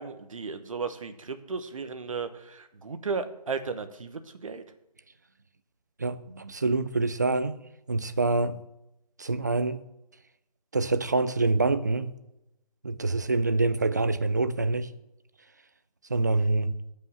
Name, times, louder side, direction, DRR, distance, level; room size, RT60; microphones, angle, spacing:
voice 1, 0.0-4.6, right 5 dB, 55° right, 1.1 m, -35 dB
voice 2, 6.0-7.6 7.9-8.6 9.2-9.8 10.7-12.1 12.8-14.9 16.1-16.7, right 3 dB, 25° right, 0.4 m, -26 dB
12.5 x 5.5 x 5.7 m
figure-of-eight pair, 165°, 21 cm